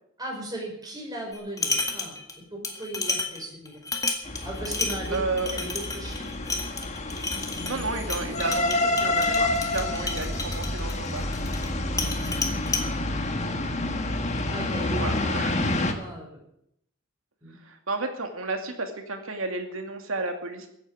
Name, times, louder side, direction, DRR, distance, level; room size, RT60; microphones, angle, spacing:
voice 1, 0.2-2.1 2.5-3.7 4.4-5.2 5.5-6.3 14.5-16.3 17.4-17.5, right 1 dB, 20° right, 0 dB, 5.0 m, -37 dB
sound 1, 1.3-2.4 2.6-11.7 12.0-12.9, left 3 dB, 15° left, 1.8 m, -31 dB
sound 2, 4.2-15.9, left 2 dB, 35° left, 1.6 m, -28 dB
voice 2, 5.1-5.5 7.3-11.3 15.0-15.5 17.6-20.7, right 3 dB, 75° right, 5 dB, 2.5 m, -32 dB
15.0 x 8.7 x 8.7 m, 0.75 s
head